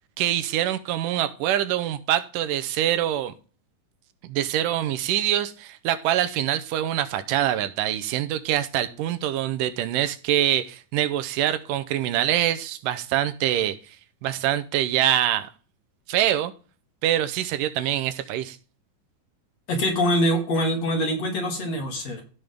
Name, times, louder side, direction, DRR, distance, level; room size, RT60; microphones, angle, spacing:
voice 1, 0.2-3.3 4.2-13.8 14.2-15.5 16.1-16.5 17.0-18.6, right 12 dB, 85° right, 11 dB, 2.3 m, -24 dB
voice 2, 19.7-22.2, equal, 55° left, 2 dB, 3.3 m, -24 dB
15.5 x 5.6 x 3.5 m, 0.37 s
omnidirectional pair, 3.9 m